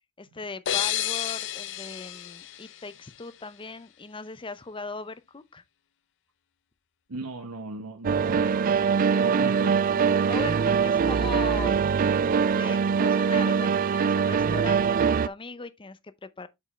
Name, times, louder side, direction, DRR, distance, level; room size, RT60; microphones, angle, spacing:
voice 1, 0.2-5.6 9.3-9.5 10.3-11.8 12.5-16.5, left 4 dB, 25° left, 0.6 m, -39 dB
sound 1, 0.7-3.4, left 11 dB, 60° left, 0.7 m, -31 dB
voice 2, 7.1-8.7 9.2-10.0, right 2 dB, 85° right, 1.1 m, -38 dB
sound 2, 8.0-15.3, right 6 dB, 40° right, 0.3 m, -23 dB
8.0 x 5.2 x 3.1 m
head